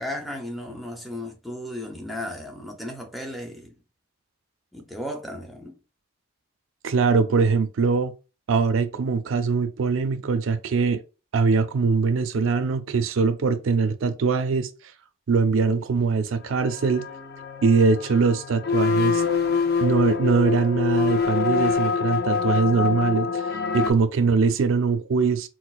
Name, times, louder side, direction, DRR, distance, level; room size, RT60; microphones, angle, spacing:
voice 1, 0.0-3.7 4.7-5.8, left 1 dB, ahead, 0.5 m, -35 dB
voice 2, 6.8-8.1 8.5-11.0 11.3-14.7 15.3-17.1 17.6-19.2 19.8-23.4 23.7-25.5, right 4 dB, 70° right, 0.4 m, -22 dB
sound 1, 16.7-23.9, left 5 dB, 50° left, 0.4 m, -25 dB
4.3 x 2.0 x 2.4 m
head